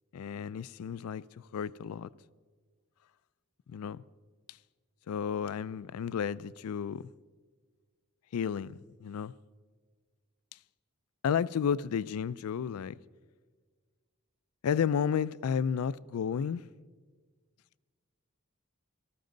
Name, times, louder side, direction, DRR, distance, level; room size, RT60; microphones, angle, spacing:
voice 1, 0.1-2.1 3.7-4.0 5.1-7.1 8.3-9.3 11.2-13.0 14.6-16.7, left 7 dB, 85° left, 0.4 m, -32 dB
18.5 x 14.0 x 3.9 m
head